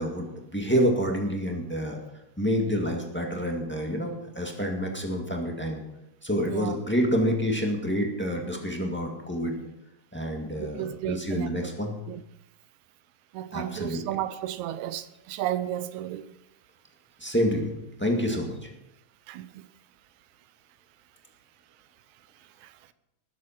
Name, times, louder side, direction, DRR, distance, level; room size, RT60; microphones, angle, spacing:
voice 1, 0.0-2.0 2.4-5.8 6.2-9.6 10.1-11.9 13.5-14.0 17.2-18.7, equal, 5° left, 1.3 m, -28 dB
voice 2, 10.6-11.5 12.1-12.2 13.3-16.3 19.3-19.7 22.6-22.9, right 12 dB, 85° right, 2.1 m, -33 dB
19.0 x 7.8 x 5.8 m
omnidirectional pair, 3.3 m